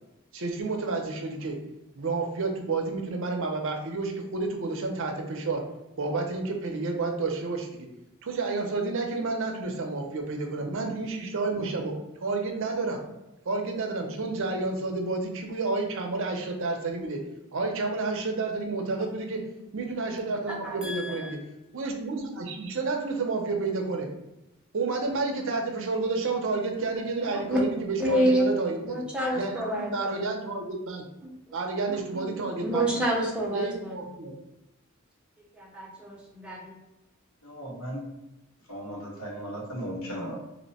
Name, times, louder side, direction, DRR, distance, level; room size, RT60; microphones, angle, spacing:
voice 1, 0.3-1.5 1.9-5.6 6.0-7.9 8.2-11.9 12.2-13.0 13.5-17.2 17.5-19.4 19.7-21.4 21.7-24.1 24.7-29.0 29.3-31.0 31.5-32.8 33.5-34.3, right 3 dB, 60° right, 2 dB, 0.6 m, -30 dB
voice 2, 20.6-21.4 27.3-27.6 28.0-28.5 28.8-30.3 31.2-31.3 31.9-34.2 35.5-36.7, right 1 dB, 5° right, -3 dB, 0.6 m, -29 dB
voice 3, 37.4-38.0 38.7-40.4, equal, 65° left, -5 dB, 1.4 m, -36 dB
2.8 x 2.1 x 4.0 m, 0.96 s
head